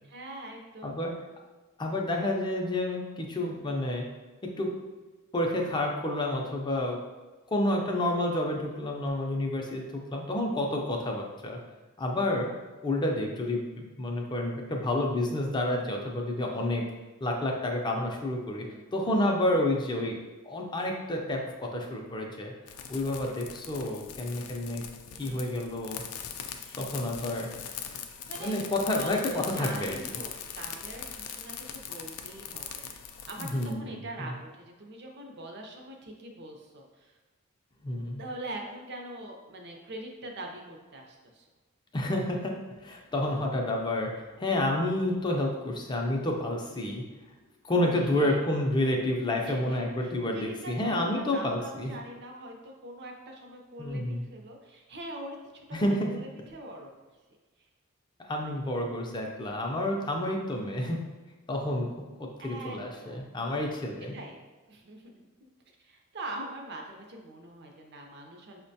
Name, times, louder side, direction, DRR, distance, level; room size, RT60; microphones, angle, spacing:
voice 1, 0.0-1.0 18.6-19.1 25.1-25.6 26.6-26.8 28.3-28.5 28.9-33.0 33.3-37.2 38.2-41.5 48.0-48.4 49.5-56.9 58.4-58.9 62.4-63.3 64.1-64.4 64.7-68.6, right 1 dB, 50° right, 2 dB, 0.5 m, -43 dB
voice 2, 1.8-4.1 4.6-4.7 5.3-7.0 7.5-11.6 12.0-12.5 12.8-16.8 17.2-18.7 18.9-20.1 20.4-22.5 22.9-24.8 25.2-26.0 26.8-27.5 28.4-30.0 33.4-34.4 37.8-38.2 41.9-42.5 42.8-47.0 47.7-51.9 53.8-54.2 55.7-56.1 58.2-61.0 61.5-61.9 62.4-64.1, left 1 dB, 20° left, 1 dB, 0.4 m, -29 dB
sound 1, 22.7-33.7, left 8 dB, 85° left, 0.3 m, -41 dB
5.1 x 2.1 x 2.7 m, 1.2 s
head